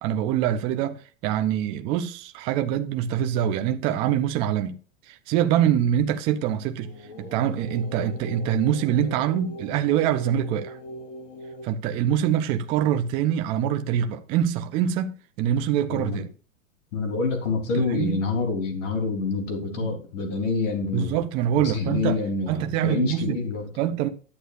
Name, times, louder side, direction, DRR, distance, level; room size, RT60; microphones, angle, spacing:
voice 1, 0.0-4.8 5.1-6.9 7.2-10.8 11.6-16.3 17.7-18.2 19.8-19.9 20.9-22.2 22.5-23.4 23.8-24.1, right 10 dB, 15° right, 0.3 m, -24 dB
sound 1, 6.3-11.7, equal, 50° left, 3.1 m, -41 dB
voice 2, 15.9-16.2 16.9-21.2 21.6-23.6, left 4 dB, 70° left, 3.6 m, -27 dB
11.5 x 8.1 x 2.5 m
hypercardioid pair, 140°, 39 cm